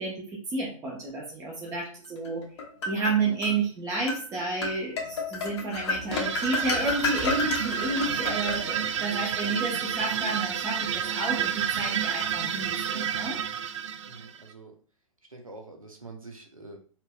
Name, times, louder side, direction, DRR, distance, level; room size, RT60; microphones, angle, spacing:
voice 1, 0.0-2.4 2.9-13.4, right 3 dB, 15° right, -3 dB, 0.8 m, -31 dB
sound 1, 2.2-3.6 4.1-4.2 4.6-9.0, left 3 dB, 55° left, 1.0 m, -31 dB
sound 2, 6.1-14.5, right 8 dB, 60° right, 0.4 m, -30 dB
voice 2, 14.1-14.7 15.3-16.8, right 3 dB, 90° right, 3 dB, 0.9 m, -46 dB
4.3 x 2.6 x 2.2 m, 0.41 s
figure-of-eight pair, 115°, 17 cm